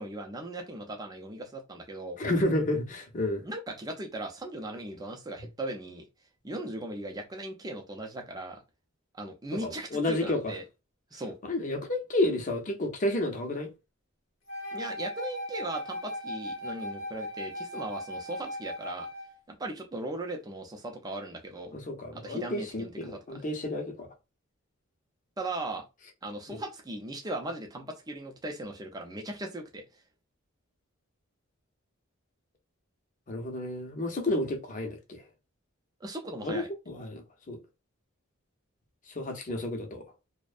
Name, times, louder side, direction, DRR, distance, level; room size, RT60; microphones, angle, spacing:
voice 1, 0.0-2.2 3.4-6.0 6.4-8.6 9.1-10.6 11.1-11.4 14.7-19.1 19.5-21.7 22.1-23.4 25.4-25.8 26.2-29.8 36.0-36.7, right 1 dB, 20° right, 0.5 m, -38 dB
voice 2, 2.2-3.4 9.6-10.5 11.5-13.7 21.7-24.1 26.5-26.6 33.3-35.2 36.4-37.6 39.1-40.0, left 1 dB, 40° left, 0.6 m, -31 dB
Wind instrument woodwind instrument, 14.5-19.4, left 1 dB, 65° left, 0.8 m, -38 dB
2.5 x 2.1 x 2.4 m
head